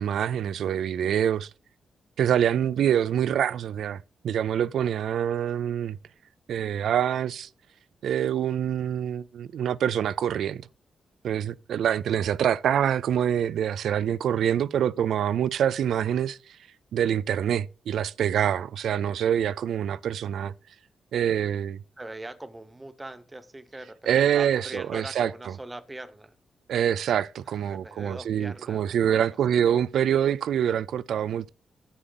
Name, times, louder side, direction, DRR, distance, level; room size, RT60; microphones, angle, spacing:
voice 1, 0.0-1.5 2.2-6.0 6.5-7.5 8.0-10.6 11.2-16.6 16.9-20.5 21.1-21.8 24.1-25.3 26.7-31.5, right 9 dB, 90° right, 0.4 m, -25 dB
voice 2, 22.0-26.4 27.5-29.3, right 1 dB, 10° right, 0.8 m, -41 dB
10.0 x 9.0 x 3.9 m
wide cardioid pair, 180°, 0 cm